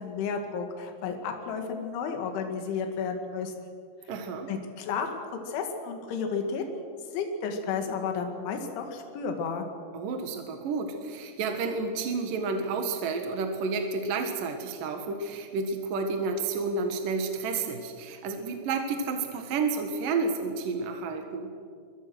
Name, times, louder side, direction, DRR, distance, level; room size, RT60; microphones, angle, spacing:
voice 1, 0.0-3.5 4.5-6.8 7.1-9.7, left 5 dB, 70° left, 4 dB, 4.5 m, -32 dB
voice 2, 4.1-4.5 9.9-21.5, right 4 dB, 60° right, 5 dB, 2.5 m, -30 dB
26.0 x 22.5 x 6.3 m, 2.1 s
omnidirectional pair, 5.7 m